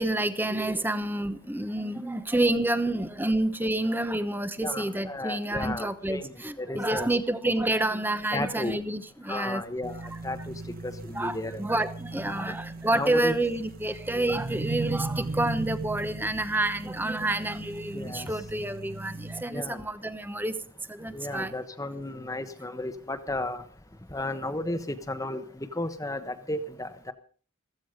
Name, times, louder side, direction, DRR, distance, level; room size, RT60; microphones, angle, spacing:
voice 1, 0.0-9.6 11.1-20.6 20.9-21.5, right 1 dB, 10° right, 12 dB, 0.9 m, -29 dB
voice 2, 4.6-7.1 8.3-8.8 9.3-11.6 12.2-12.5 12.9-13.4 17.9-18.3 19.5-19.8 21.0-23.6 24.1-27.1, left 2 dB, 15° left, 10 dB, 1.1 m, -34 dB
sound 1, 9.8-19.4, right 2 dB, 40° right, 0.7 m, -37 dB
15.5 x 15.0 x 5.1 m, 0.40 s
head